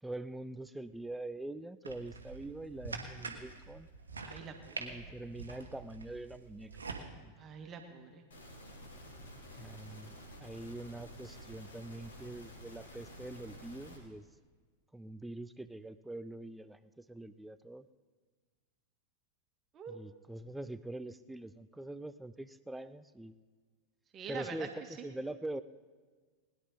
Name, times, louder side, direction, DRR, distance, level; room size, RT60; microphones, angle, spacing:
voice 1, 0.0-3.9 4.8-6.7 7.2-7.3 9.6-14.3 14.9-17.8 19.9-23.3 24.3-25.6, right 2 dB, 5° right, 13 dB, 0.5 m, -44 dB
sound 1, 1.8-7.0, right 4 dB, 75° right, 1.4 m, -45 dB
voice 2, 4.2-5.0 7.4-8.2 19.7-19.9 24.1-24.7 25.0-25.1, right 6 dB, 30° right, 4 dB, 1.9 m, -45 dB
sound 2, 8.3-14.0, equal, 65° left, 3.3 m, -51 dB
sound 3, 8.8-14.1, left 1 dB, 15° left, 2.1 m, -59 dB
20.5 x 11.0 x 4.1 m, 1.5 s
figure-of-eight pair, 90°, 0 cm